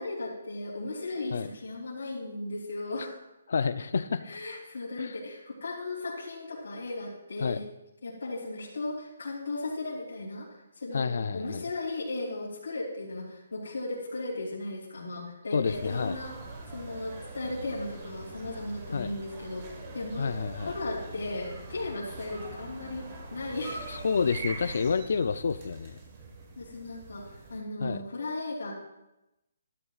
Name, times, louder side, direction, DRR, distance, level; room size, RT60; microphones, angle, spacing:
voice 1, 0.0-3.2 4.2-7.7 8.0-10.5 10.8-16.3 16.7-19.7 19.9-20.3 20.6-23.9 24.6-24.8 26.6-28.8, left 2 dB, 85° left, -8 dB, 3.1 m, -36 dB
voice 2, 3.5-4.2 5.0-5.1 7.4-7.6 10.9-11.6 15.5-16.2 18.9-19.1 20.2-20.7 23.9-26.0 27.8-28.0, left 5 dB, 65° left, 12 dB, 0.4 m, -29 dB
sound 1, 15.7-27.6, right 3 dB, 30° right, 1.5 m, -43 dB
12.5 x 12.0 x 2.4 m, 0.93 s
hypercardioid pair, 165°, 0 cm